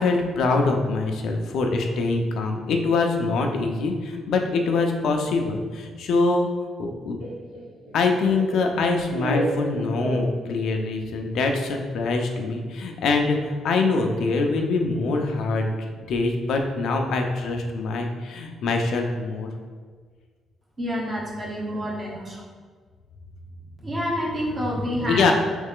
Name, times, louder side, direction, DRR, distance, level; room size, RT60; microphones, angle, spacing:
voice 1, 0.0-6.5 6.8-7.2 7.9-15.7 15.9-19.5 25.0-25.3, left 3 dB, 75° left, 3 dB, 0.4 m, -24 dB
Laughter, 7.2-10.9, right 1 dB, 85° right, 0.9 m, -31 dB
voice 2, 20.8-22.4 23.8-25.3, equal, 30° right, -3 dB, 1.0 m, -28 dB
3.2 x 3.1 x 3.6 m, 1.5 s
cardioid pair, 90°, 0 cm